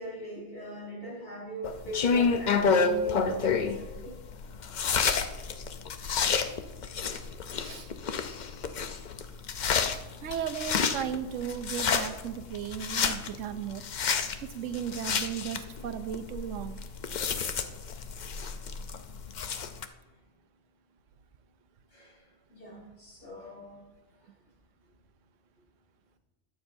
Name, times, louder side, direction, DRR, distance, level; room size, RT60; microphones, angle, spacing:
voice 1, 0.0-4.2 21.9-23.8, right 1 dB, 70° left, -4 dB, 4.0 m, -41 dB
sound 1, 1.6-19.9, left 5 dB, 50° left, 0.6 m, -30 dB
voice 2, 10.2-13.8 14.5-16.8, right 9 dB, 90° right, 11 dB, 1.0 m, -35 dB
20.5 x 7.0 x 2.6 m, 1.1 s
omnidirectional pair, 1.3 m